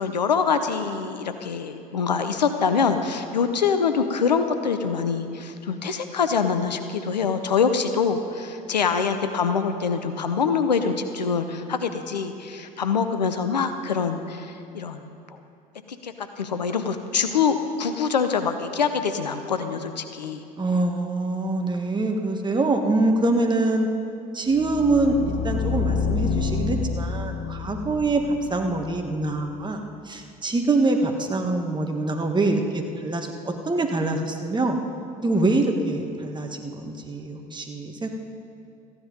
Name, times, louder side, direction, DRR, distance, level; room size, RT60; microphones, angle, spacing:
voice 1, 0.0-15.1 15.3-15.4 16.0-20.4, left 6 dB, 90° left, 8 dB, 0.7 m, -25 dB
voice 2, 20.6-23.9 24.3-28.2 28.5-34.8 35.2-38.1, right 2 dB, 20° right, 4 dB, 1.6 m, -24 dB
sound 1, 24.5-29.5, left 5 dB, 50° left, 0.9 m, -28 dB
14.5 x 10.0 x 5.2 m, 2.5 s
figure-of-eight pair, 65°, 21 cm